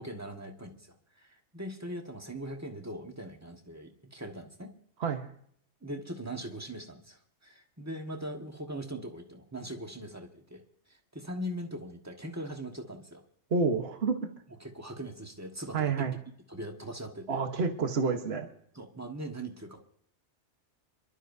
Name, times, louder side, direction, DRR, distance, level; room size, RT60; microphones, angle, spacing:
voice 1, 0.0-4.7 5.8-13.2 14.6-16.2 16.5-17.4 18.7-19.8, right 1 dB, 15° right, 3 dB, 1.5 m, -41 dB
voice 2, 13.5-14.3 15.7-16.1 17.3-18.5, right 4 dB, 55° right, 5 dB, 1.4 m, -29 dB
27.0 x 12.5 x 2.7 m, 0.65 s
omnidirectional pair, 1.3 m